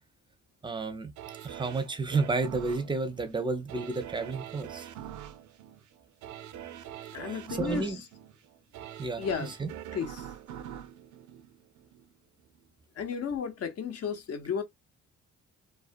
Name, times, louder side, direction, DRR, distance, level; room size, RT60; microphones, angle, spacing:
voice 1, 0.6-1.1 1.4-4.9 7.6-8.0 9.0-9.3 9.6-9.7, right 3 dB, 15° right, 0.5 m, -31 dB
sound 1, 1.2-12.1 12.5-12.6, right 11 dB, 75° right, 0.5 m, -44 dB
voice 2, 7.1-8.0 9.2-9.5 9.9-10.3 13.0-14.6, left 6 dB, 55° left, 0.8 m, -33 dB
2.4 x 2.2 x 2.4 m
cardioid pair, 90°, 30 cm